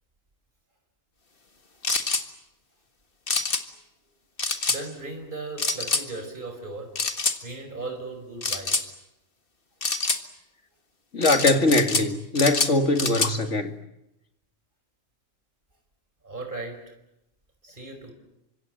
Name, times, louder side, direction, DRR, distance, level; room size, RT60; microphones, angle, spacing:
sound 1, 1.8-2.2 3.3-3.6 4.4-4.8 5.6-6.0 7.0-7.4 8.4-8.9 9.8-10.2 11.2-12.1 12.4-13.3, left 3 dB, 45° left, 1.9 m, -26 dB
voice 1, 4.7-7.0 7.4-8.9 16.2-16.9 17.6-18.1, right 3 dB, 40° right, 5.1 m, -37 dB
voice 2, 11.1-13.7, left 2 dB, 65° left, 2.5 m, -22 dB
29.5 x 25.5 x 7.8 m
omnidirectional pair, 1.4 m